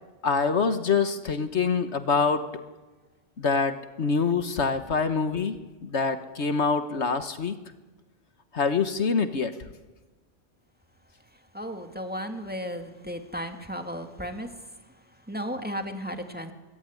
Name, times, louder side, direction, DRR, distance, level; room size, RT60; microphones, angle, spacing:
voice 1, 0.2-2.4 3.4-5.6 5.8-7.5 8.5-9.5, left 5 dB, 70° left, 10 dB, 1.6 m, -25 dB
voice 2, 11.5-14.5 15.3-16.5, equal, 10° right, 5 dB, 2.4 m, -34 dB
25.0 x 21.0 x 9.8 m, 1.2 s
omnidirectional pair, 1.2 m